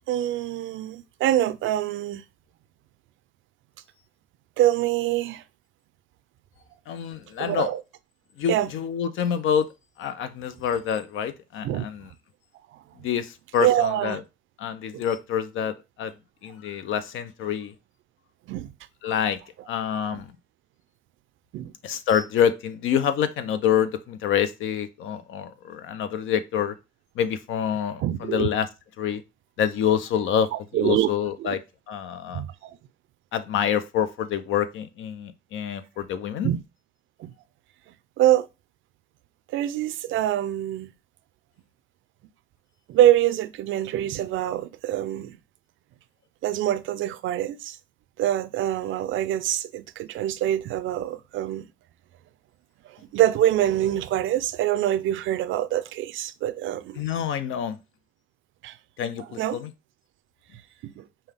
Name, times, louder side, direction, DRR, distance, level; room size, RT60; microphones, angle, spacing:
voice 1, 0.1-2.2 4.6-5.4 7.4-7.8 8.5-8.7 11.6-11.9 12.7-12.8 13.6-14.2 14.9-15.0 18.5-18.7 20.1-20.2 21.5-21.7 28.0-28.5 30.5-31.1 31.4-31.5 32.3-32.8 36.4-36.6 37.2-37.3 38.2-38.5 39.5-40.9 42.9-45.4 46.4-47.8 48.2-51.7 52.8-57.0 58.6-58.8 59.2-59.6 60.8-61.0, right 12 dB, 80° right, 0.4 m, -25 dB
voice 2, 6.9-7.7 8.4-9.7 10.0-12.1 13.0-14.2 14.6-16.1 16.4-17.7 19.0-19.4 19.7-20.3 21.8-26.8 27.2-28.7 29.0-29.2 29.6-30.5 30.8-31.6 31.9-32.4 33.3-36.5 57.0-57.8 59.0-59.7, left 8 dB, 80° left, 0.6 m, -26 dB
5.4 x 2.3 x 3.4 m
cardioid pair, 90°, 20 cm